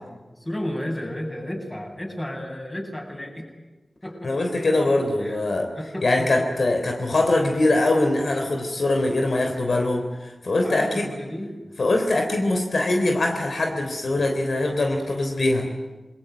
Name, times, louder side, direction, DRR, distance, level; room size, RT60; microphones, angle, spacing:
voice 1, 0.1-3.5 4.0-4.5 5.2-5.4 5.7-6.5 10.6-11.7, left 1 dB, 20° left, 1 dB, 7.8 m, -33 dB
voice 2, 4.2-5.7 6.0-11.1 11.8-15.7, left 2 dB, 75° left, 3 dB, 3.5 m, -22 dB
27.0 x 22.0 x 9.2 m, 1.2 s
wide cardioid pair, 75°, 0 cm